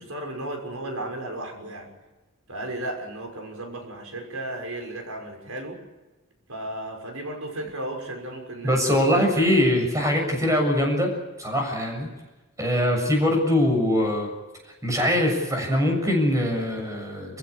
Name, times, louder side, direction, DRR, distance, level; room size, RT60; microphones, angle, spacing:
voice 1, 0.0-1.9 2.5-5.8 6.5-9.7, right 1 dB, 85° right, 3 dB, 6.4 m, -34 dB
voice 2, 8.6-11.1 11.4-12.1 12.6-14.3 14.8-17.4, left 1 dB, 15° right, 3 dB, 7.2 m, -22 dB
28.5 x 16.0 x 10.0 m, 1.1 s
head